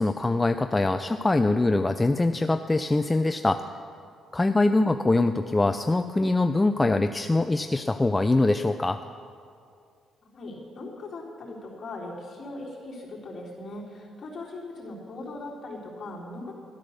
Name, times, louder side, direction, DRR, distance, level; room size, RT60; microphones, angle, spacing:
voice 1, 0.0-3.6 4.3-9.0, left 2 dB, 15° left, 8 dB, 0.4 m, -23 dB
voice 2, 10.3-16.5, left 2 dB, 50° left, -4 dB, 3.6 m, -39 dB
12.0 x 12.0 x 6.5 m, 2.3 s
cardioid pair, 90°, 0 cm